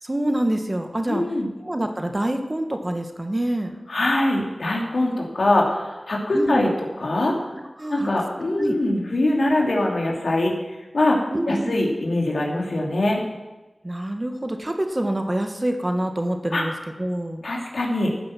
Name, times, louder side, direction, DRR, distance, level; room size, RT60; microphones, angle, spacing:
voice 1, 0.0-1.2 1.6-3.7 6.3-6.7 7.8-8.1 8.6-8.8 11.3-11.8 13.8-17.4, right 1 dB, 25° right, 5 dB, 1.3 m, -26 dB
voice 2, 1.1-1.5 3.9-6.7 7.0-7.5 7.9-13.2 16.5-16.7 17.4-18.1, left 1 dB, 75° left, -1 dB, 2.7 m, -23 dB
14.5 x 8.9 x 5.9 m, 1.1 s
wide cardioid pair, 60°, 0 cm